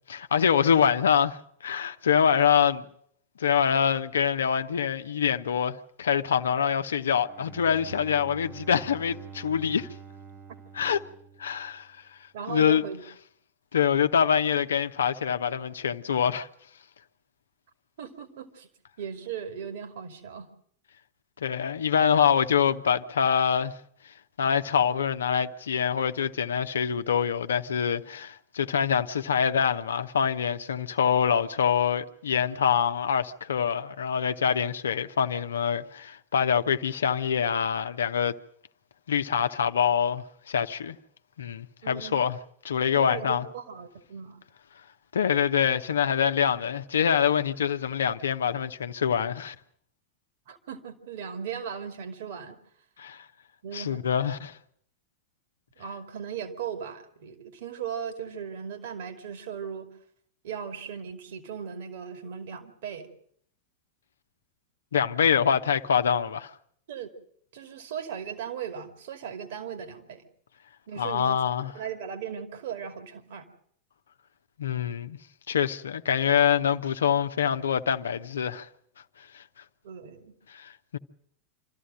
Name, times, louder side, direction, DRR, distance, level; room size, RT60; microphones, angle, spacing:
voice 1, 0.1-2.8 3.4-9.9 10.7-11.0 11.4-11.9 12.5-12.8 13.7-16.5 21.4-23.7 24.4-38.3 39.1-41.0 41.4-42.4 42.6-43.5 45.1-49.5 53.0-53.2 53.7-54.6 64.9-66.5 71.0-71.7 74.6-75.2 75.5-78.7 79.3-79.4 80.5-81.0, left 8 dB, 65° left, 0.8 m, -25 dB
Bowed string instrument, 7.0-12.0, right 6 dB, 15° right, 1.2 m, -46 dB
voice 2, 12.3-13.0 18.0-18.7 19.0-20.5 41.8-42.2 42.9-44.4 50.5-52.6 53.6-54.1 55.8-59.9 60.4-63.1 66.9-67.1 67.5-70.2 70.9-71.4 71.7-73.5 79.8-80.3, right 7 dB, 55° right, 2.5 m, -37 dB
26.5 x 14.0 x 7.8 m
figure-of-eight pair, 90°, 0 cm